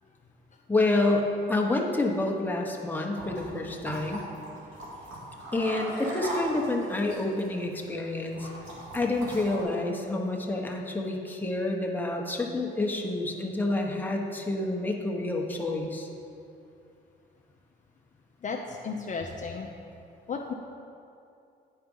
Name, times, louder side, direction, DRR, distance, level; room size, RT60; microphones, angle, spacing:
voice 1, 0.7-4.3 5.5-8.5 8.9-16.1, left 2 dB, 10° left, 0 dB, 1.0 m, -28 dB
sound 1, 3.2-9.6, right 1 dB, 85° right, 2.1 m, -39 dB
voice 2, 18.4-19.7 20.3-20.5, left 5 dB, 40° left, 0 dB, 0.6 m, -34 dB
9.3 x 4.8 x 5.4 m, 2.6 s
cardioid pair, 90°, 20 cm